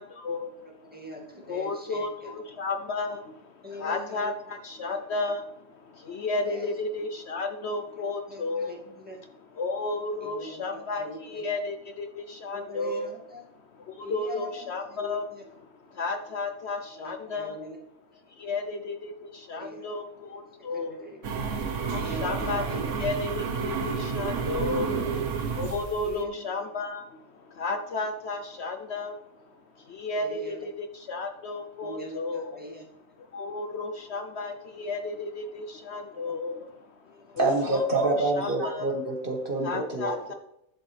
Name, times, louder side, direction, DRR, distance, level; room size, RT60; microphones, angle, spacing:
voice 1, 0.0-0.7 1.4-13.3 13.5-17.6 18.3-22.6 22.9-32.5 33.2-37.8 38.2-38.9 39.6-40.3, left 3 dB, 60° left, 6 dB, 0.9 m, -33 dB
voice 2, 0.9-2.4 3.6-4.3 6.1-6.7 8.0-9.2 10.2-11.4 12.5-13.4 14.0-15.4 16.9-17.8 18.1-18.5 19.5-19.9 20.7-21.2 21.9-23.2 24.5-25.2 26.0-26.3 30.2-30.7 31.8-32.8 36.3-36.4 37.1-37.6 39.9-40.0, equal, 5° right, -1 dB, 2.0 m, -42 dB
sound 1, 21.2-26.2, right 5 dB, 65° right, 1.3 m, -30 dB
voice 3, 37.4-40.1, right 2 dB, 40° right, 1 dB, 1.5 m, -26 dB
11.0 x 7.4 x 3.3 m, 0.80 s
omnidirectional pair, 1.4 m